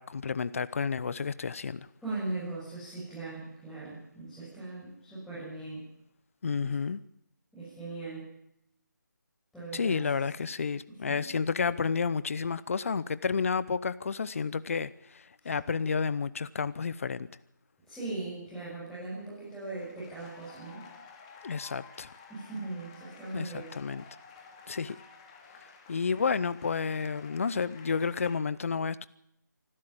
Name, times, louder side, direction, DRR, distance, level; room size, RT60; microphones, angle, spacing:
voice 1, 0.0-1.9 6.4-7.0 9.7-17.3 21.4-22.1 23.3-24.0 24.7-25.0 25.9-29.1, left 5 dB, 45° left, 17 dB, 0.9 m, -31 dB
voice 2, 2.0-5.8 6.6-6.7 7.5-8.3 9.5-10.0 10.9-11.3 15.4-15.5 17.9-20.8 22.3-23.7, right 2 dB, ahead, -13 dB, 6.9 m, -39 dB
sound 1, 19.5-28.4, left 5 dB, 20° left, 2.5 m, -53 dB
25.0 x 12.5 x 8.9 m, 0.75 s
figure-of-eight pair, 160°, 10 cm